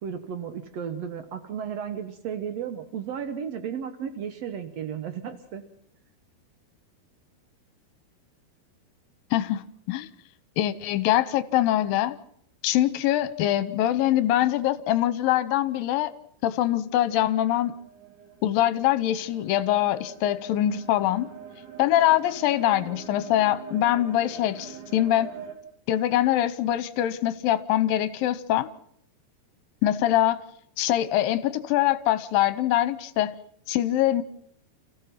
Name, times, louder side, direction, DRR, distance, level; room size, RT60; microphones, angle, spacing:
voice 1, 0.0-5.6, right 8 dB, 80° right, 1.5 m, -34 dB
voice 2, 9.3-10.1 10.6-12.2 12.6-16.1 16.4-17.7 18.4-21.3 21.8-25.3 25.9-28.7 29.8-30.4 30.8-33.4 33.7-34.2, left 13 dB, 70° left, 2.4 m, -23 dB
sound 1, 16.8-25.5, right 7 dB, 55° right, 4.2 m, -44 dB
29.5 x 15.5 x 5.9 m
omnidirectional pair, 4.7 m